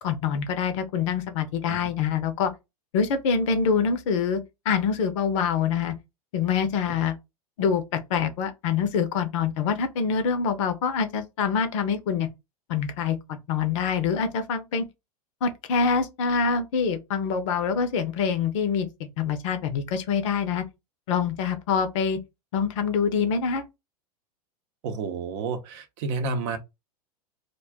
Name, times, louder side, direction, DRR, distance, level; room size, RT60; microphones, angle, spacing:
voice 1, 0.0-2.5 2.9-5.9 6.3-7.1 7.6-12.3 12.7-14.9 15.4-20.6 21.1-22.2 22.5-23.7, left 6 dB, 50° left, 0.6 m, -25 dB
voice 2, 24.8-26.6, right 4 dB, 45° right, 0.6 m, -30 dB
2.4 x 2.2 x 3.4 m
figure-of-eight pair, 90°, 20 cm